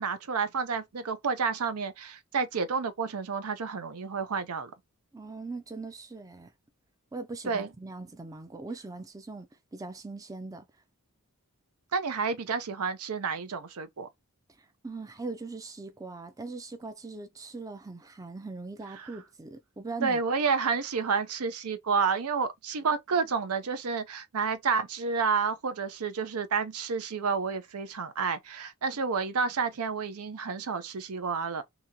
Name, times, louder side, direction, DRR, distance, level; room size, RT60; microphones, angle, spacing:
voice 1, 0.0-4.7 7.4-7.7 11.9-14.1 19.0-19.1 20.0-31.6, right 5 dB, 80° right, 0.6 m, -30 dB
voice 2, 5.1-6.5 7.1-10.7 14.8-20.2, right 3 dB, 15° right, 0.4 m, -40 dB
2.9 x 2.8 x 3.6 m
head